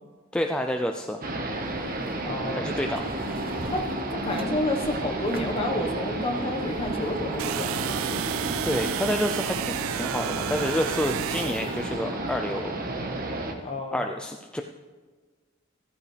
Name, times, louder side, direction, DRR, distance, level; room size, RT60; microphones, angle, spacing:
voice 1, 0.3-1.2 2.5-3.1 8.6-12.7 13.9-14.6, left 1 dB, 5° left, 3 dB, 0.4 m, -29 dB
sound 1, 1.2-13.5, right 2 dB, 45° right, 1.4 m, -32 dB
sound 2, 1.5-8.7, right 1 dB, 30° right, 0.9 m, -45 dB
voice 2, 2.2-2.7 3.6-3.8 4.1-8.0 13.6-14.0, left 1 dB, 30° left, 2 dB, 1.3 m, -30 dB
sound 3, 7.4-11.8, right 12 dB, 85° right, 0.3 m, -32 dB
14.5 x 14.5 x 3.4 m, 1.4 s
head